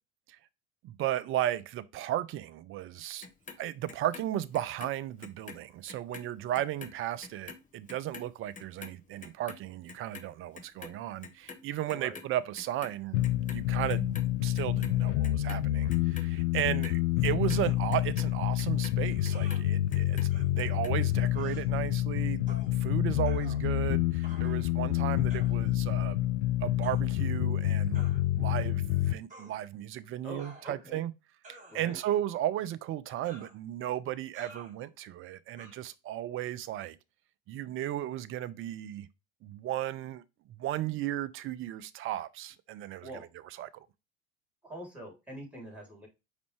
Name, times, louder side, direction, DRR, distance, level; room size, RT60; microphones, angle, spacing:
voice 1, 0.8-3.3 3.6-14.2 14.4-26.3 26.6-28.1 28.4-31.1 31.7-37.0 37.5-39.1 39.4-40.2 40.6-43.1 43.6-43.9, right 12 dB, 35° right, 0.5 m, -35 dB
Clock, 3.2-5.6 5.9-12.3 12.5-13.6 13.9-14.9 15.2-19.6 19.9-20.9 21.3-21.4, left 5 dB, 20° left, 0.8 m, -47 dB
sound 1, 13.1-29.1, left 14 dB, 80° left, 0.5 m, -28 dB
sound 2, 17.5-17.8 19.3-19.6 20.3-20.5 21.3-21.6 22.5-22.7 23.2-23.9 24.2-24.7 25.3-25.6 26.8-27.0 27.9-28.2 29.3-29.5 30.4-30.9 31.4-32.1 33.2-33.6 34.3-34.7 35.6-35.7, right 2 dB, 20° right, 2.2 m, -51 dB
voice 2, 30.2-31.0 31.7-32.0 43.0-43.3 44.6-46.1, right 1 dB, 5° right, 2.9 m, -44 dB
5.2 x 3.1 x 3.0 m
hypercardioid pair, 75°, 36 cm